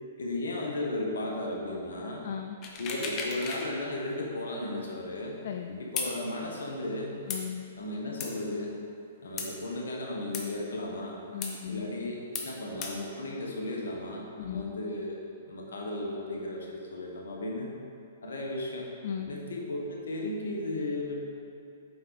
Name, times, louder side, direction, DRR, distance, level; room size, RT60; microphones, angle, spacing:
voice 1, 0.2-2.2 2.8-5.4 5.8-7.2 7.8-8.7 9.2-11.2 11.7-15.2 15.5-17.8 18.2-18.9 19.3-21.2, left 2 dB, 80° left, -1 dB, 1.5 m, -35 dB
voice 2, 2.2-2.6 5.4-5.8 7.3-7.6 11.3-11.9 14.4-14.7 19.0-19.4, left 8 dB, 60° left, 5 dB, 0.4 m, -36 dB
sound 1, 2.6-3.7 4.1-4.2 6.0-6.1 7.3-7.4 8.2-8.3 9.4-9.5 10.3-10.4 11.4-11.5 12.3-12.5 12.8-12.9, left 4 dB, 30° left, 1.1 m, -34 dB
7.6 x 5.4 x 4.1 m, 2.5 s
hypercardioid pair, 125°, 0 cm